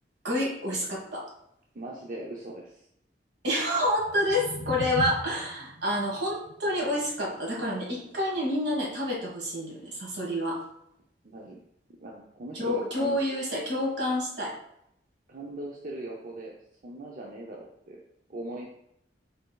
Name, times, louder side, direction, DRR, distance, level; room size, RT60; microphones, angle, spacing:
voice 1, 0.2-1.2 3.4-10.6 12.5-14.5, left 1 dB, 75° right, -3 dB, 1.6 m, -28 dB
voice 2, 1.7-2.9 11.2-11.6 12.0-13.2 15.3-16.6 16.8-18.0 18.3-18.6, right 1 dB, 50° right, -2 dB, 0.5 m, -40 dB
sound 1, 3.7-9.9, left 1 dB, 65° left, 1.7 m, -41 dB
5.2 x 4.4 x 2.3 m, 0.76 s
head